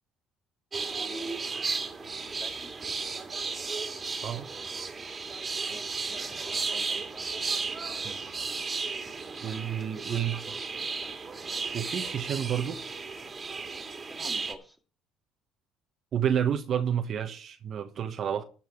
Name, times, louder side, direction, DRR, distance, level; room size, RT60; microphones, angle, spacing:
sound 1, 0.7-14.5, right 4 dB, 30° right, 2.1 m, -34 dB
voice 1, 2.4-2.8 5.7-7.3 13.9-14.8, equal, ahead, 2.4 m, -49 dB
voice 2, 9.4-10.6 11.7-12.8 16.1-18.4, right 9 dB, 55° right, 1.2 m, -30 dB
13.5 x 4.5 x 8.7 m
hypercardioid pair, 65°, 0 cm